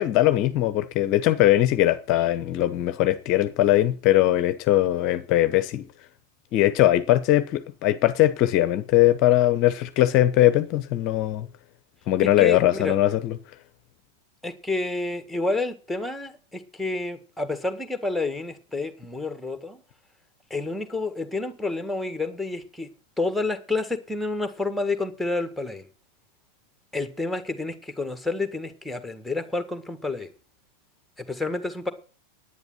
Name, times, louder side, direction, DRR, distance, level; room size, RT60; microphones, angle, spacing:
voice 1, 0.0-5.9 6.5-11.5 12.1-13.4, left 14 dB, 40° left, 0.8 m, -20 dB
voice 2, 12.2-13.0 14.4-19.8 20.5-22.9 23.2-25.9 26.9-30.3 31.3-31.9, left 3 dB, ahead, 1.6 m, -29 dB
10.5 x 9.6 x 6.1 m
figure-of-eight pair, 90°, 0 cm